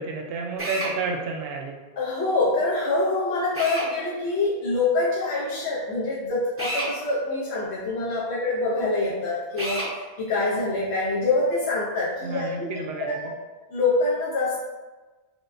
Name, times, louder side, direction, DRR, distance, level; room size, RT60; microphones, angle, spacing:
voice 1, 0.0-1.8 12.2-13.2, right 3 dB, 70° right, 1 dB, 0.8 m, -30 dB
Drill, 0.6-0.9 3.5-3.9 6.6-6.9 9.6-9.9, right 1 dB, 15° right, 0.5 m, -29 dB
voice 2, 2.0-9.8 10.2-13.3 13.7-14.6, left 2 dB, 85° left, -7 dB, 1.0 m, -25 dB
4.8 x 2.1 x 2.5 m, 1.2 s
omnidirectional pair, 1.1 m